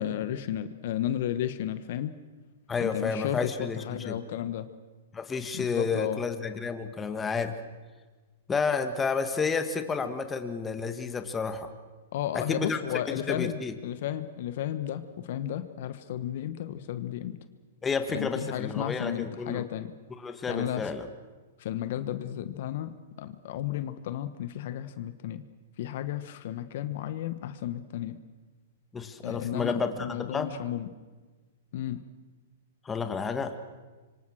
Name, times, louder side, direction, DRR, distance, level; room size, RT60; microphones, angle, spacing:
voice 1, 0.0-2.1 2.8-4.7 5.5-6.2 12.1-17.4 18.1-19.9 20.5-20.9 21.6-25.4 25.8-28.2 29.2-30.9 31.7-32.0, left 11 dB, 60° left, 12 dB, 1.3 m, -33 dB
voice 2, 2.7-4.2 5.1-7.5 8.5-11.7 12.3-13.7 17.8-19.6 20.2-21.1 28.9-30.5 32.8-33.6, left 5 dB, 15° left, 8 dB, 1.6 m, -31 dB
26.5 x 25.0 x 6.4 m, 1.3 s
hypercardioid pair, 140°, 0 cm